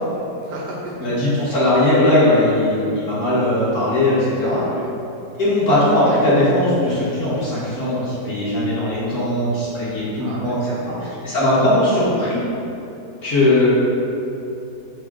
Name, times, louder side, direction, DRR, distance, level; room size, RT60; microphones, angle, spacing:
voice 1, 0.4-0.9 4.4-5.1 10.2-11.1, right 2 dB, 75° right, -4 dB, 1.2 m, -33 dB
voice 2, 1.0-4.6 5.4-10.6 11.2-12.4 13.2-13.7, left 1 dB, 45° left, -11 dB, 1.5 m, -18 dB
5.9 x 2.3 x 3.6 m, 2.8 s
omnidirectional pair, 2.0 m